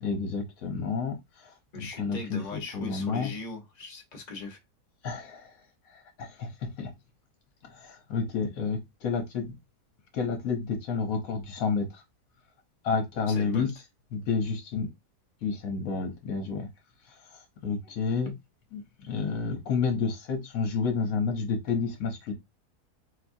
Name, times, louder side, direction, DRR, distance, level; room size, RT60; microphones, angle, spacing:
voice 1, 0.0-2.4 2.7-3.3 5.0-5.5 6.2-6.9 7.6-9.5 10.1-12.0 12.8-13.7 14.1-14.9 15.4-16.7 17.3-18.3 18.7-22.3, left 5 dB, 65° left, 1.1 m, -30 dB
voice 2, 1.7-4.6 13.3-13.7, left 3 dB, 35° left, 0.8 m, -39 dB
4.2 x 2.3 x 2.5 m
omnidirectional pair, 1.7 m